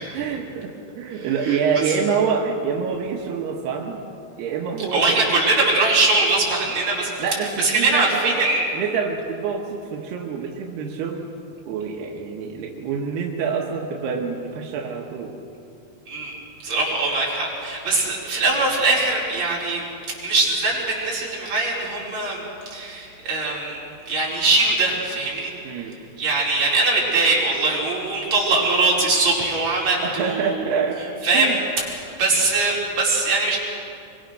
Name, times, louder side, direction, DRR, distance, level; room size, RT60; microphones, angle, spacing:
voice 1, 0.0-4.0 4.4-5.7 7.2-11.3 11.7-15.4 25.7-25.9 30.0-31.0 31.3-31.6, right 6 dB, 85° right, 0 dB, 3.4 m, -26 dB
voice 2, 1.1-1.6 1.9-2.0 4.9-7.1 7.6-8.7 16.1-16.4 16.6-19.8 20.2-23.8 24.1-25.5 26.2-30.6 31.2-33.6, right 3 dB, 40° right, -5 dB, 6.2 m, -22 dB
24.5 x 24.0 x 6.5 m, 2.6 s
omnidirectional pair, 4.6 m